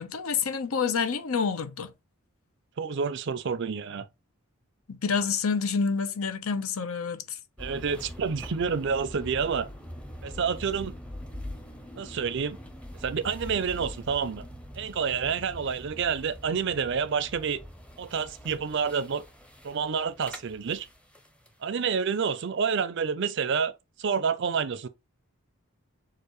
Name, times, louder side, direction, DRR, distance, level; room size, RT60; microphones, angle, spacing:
voice 1, 0.0-1.9 4.9-7.4, left 5 dB, 80° left, 0.8 m, -28 dB
voice 2, 2.8-4.1 7.6-9.7 10.2-10.9 12.0-12.6 13.0-14.5 14.8-17.6 18.0-19.2 19.6-20.9 21.6-23.7 24.0-24.9, right 6 dB, 55° right, 0.5 m, -28 dB
sound 1, 7.6-21.5, equal, 5° left, 0.6 m, -43 dB
6.7 x 2.5 x 3.1 m
head